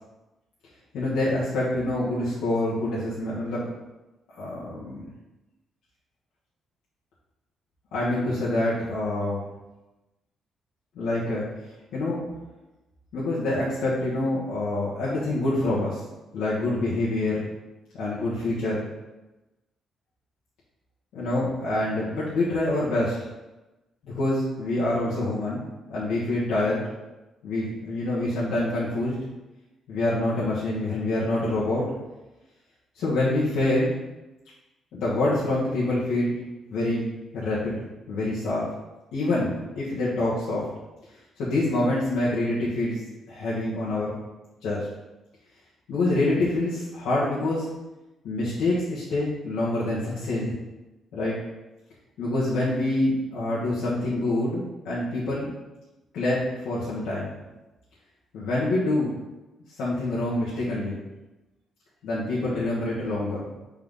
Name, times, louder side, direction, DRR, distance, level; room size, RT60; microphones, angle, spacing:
voice 1, 0.9-3.7 4.3-5.1 7.9-9.4 10.9-11.5 11.9-12.2 13.1-16.0 16.3-17.4 18.0-18.9 21.1-23.1 24.1-25.6 25.9-26.8 27.4-29.1 29.9-31.8 32.9-33.9 34.9-36.4 36.7-37.1 37.3-38.7 39.1-40.6 41.4-43.0 43.3-44.1 44.6-44.9 45.9-47.7 48.2-50.5 51.1-51.4 52.2-55.5 56.1-57.3 58.3-59.2 59.8-61.0 62.0-63.4, left 2 dB, 85° left, -9 dB, 1.5 m, -26 dB
4.5 x 3.8 x 5.5 m, 1.0 s
cardioid pair, 145°, 0 cm